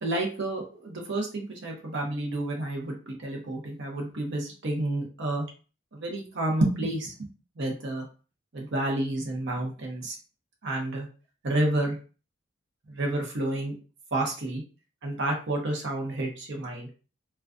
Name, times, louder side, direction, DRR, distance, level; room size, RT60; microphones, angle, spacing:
voice 1, 0.0-5.4 5.9-7.3 7.6-8.0 8.5-10.2 10.6-11.1 11.4-12.0 12.9-13.7 14.1-14.6 15.0-16.9, right 1 dB, 60° right, 0 dB, 0.7 m, -30 dB
2.3 x 2.3 x 2.4 m, 0.35 s
head